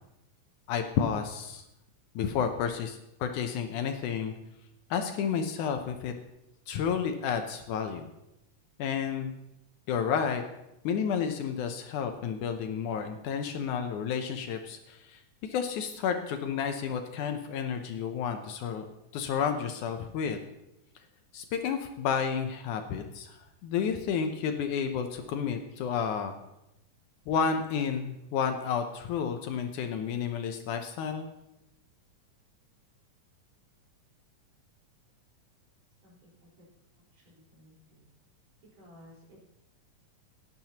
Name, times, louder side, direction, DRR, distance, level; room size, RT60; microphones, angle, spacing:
voice 1, 0.7-1.6 2.2-4.3 4.9-6.1 6.7-8.1 8.8-9.3 9.9-10.4 10.8-18.9 19.1-20.4 21.3-26.3 27.3-31.3, left 7 dB, 75° left, 5 dB, 2.1 m, -31 dB
voice 2, 37.1-38.1 38.8-39.5, left 1 dB, 50° right, -6 dB, 5.5 m, -56 dB
17.0 x 11.0 x 2.9 m, 0.88 s
omnidirectional pair, 3.8 m